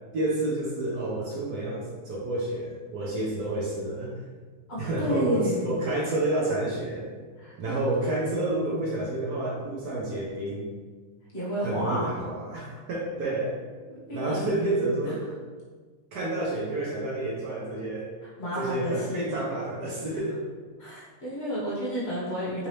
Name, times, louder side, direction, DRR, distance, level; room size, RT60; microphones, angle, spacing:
voice 1, 0.1-4.2 4.8-7.1 7.6-10.7 11.6-13.6 14.1-15.2 16.1-18.1 18.6-20.4, right 2 dB, 65° right, -4 dB, 1.0 m, -29 dB
voice 2, 4.7-5.7 7.4-7.8 11.3-12.1 12.5-12.8 13.9-14.4 18.2-19.3 20.8-22.7, equal, 40° left, -8 dB, 1.0 m, -32 dB
3.7 x 2.8 x 3.1 m, 1.4 s
omnidirectional pair, 2.3 m